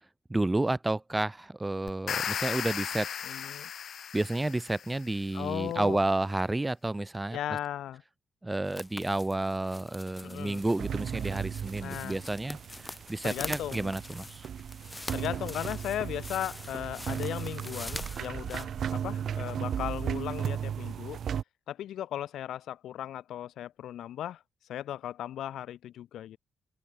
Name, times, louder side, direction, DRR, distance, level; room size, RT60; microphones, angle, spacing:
voice 1, 0.3-3.1 4.1-7.4 8.4-12.6 12.8-14.4, right 2 dB, 15° right, 4.2 m, -30 dB
sound 1, 1.9-5.1, left 8 dB, 60° left, 1.5 m, -35 dB
voice 2, 3.2-3.7 5.3-6.0 7.3-8.0 10.2-10.6 11.8-12.2 13.2-14.0 15.1-21.2 21.7-24.4 24.7-26.4, left 11 dB, 75° left, 4.0 m, -37 dB
sound 2, 8.6-18.6, left 2 dB, 15° left, 3.2 m, -44 dB
sound 3, 10.6-21.4, right 8 dB, 60° right, 6.1 m, -36 dB
open air
cardioid pair, 90°, 0 cm